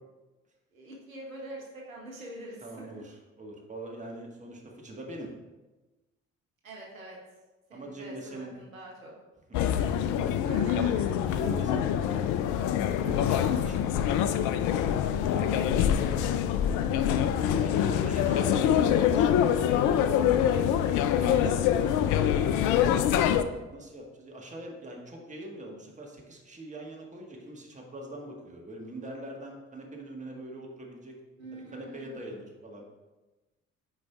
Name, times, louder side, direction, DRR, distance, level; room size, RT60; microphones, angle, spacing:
voice 1, 0.7-3.0 6.6-7.2 7.7-9.1 9.7-10.0 10.4-11.1 15.8-16.2 17.8-18.2 18.5-18.6 20.7-21.4 22.4-22.8 31.4-32.3, right 1 dB, 85° right, -2 dB, 1.0 m, -44 dB
voice 2, 2.6-5.3 7.7-8.5 9.5-9.7 10.8-10.9 11.3-12.4 13.0-14.0 15.3-16.0 17.5-20.7 21.2-22.1 23.7-31.1 31.5-32.8, right 1 dB, 20° right, 0 dB, 1.5 m, -42 dB
sound 1, 9.5-23.4, left 9 dB, 50° left, 0.5 m, -25 dB
8.3 x 4.8 x 2.4 m, 1.1 s
figure-of-eight pair, 50°, 40 cm